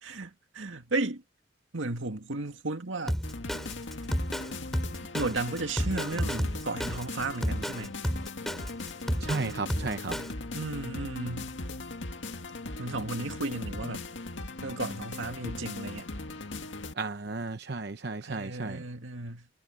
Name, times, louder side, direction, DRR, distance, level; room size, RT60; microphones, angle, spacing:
voice 1, 0.0-1.2 1.7-3.2 5.1-8.0 10.5-11.5 12.8-14.0 14.6-16.1 18.2-19.5, right 2 dB, 90° right, 2.1 m, -34 dB
Drum kit, 3.1-10.3, equal, ahead, 3.3 m, -31 dB
sound 1, 3.2-16.9, left 2 dB, 75° left, 1.9 m, -39 dB
voice 2, 9.2-10.2 17.0-18.8, right 3 dB, 55° right, 0.8 m, -33 dB
head